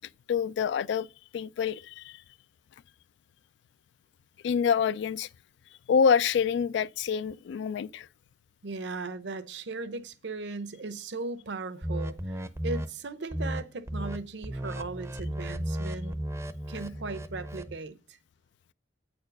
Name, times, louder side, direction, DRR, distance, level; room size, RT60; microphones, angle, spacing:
voice 1, 0.3-1.1 1.3-2.2 4.4-5.3 5.9-8.1, left 7 dB, 65° left, 0.3 m, -26 dB
voice 2, 8.6-16.2 16.7-17.9, right 3 dB, 70° right, 0.8 m, -37 dB
sound 1, 11.8-12.9 13.3-13.6 13.9-14.2 14.4-17.7, equal, 15° right, 0.6 m, -34 dB
8.7 x 4.4 x 6.6 m
head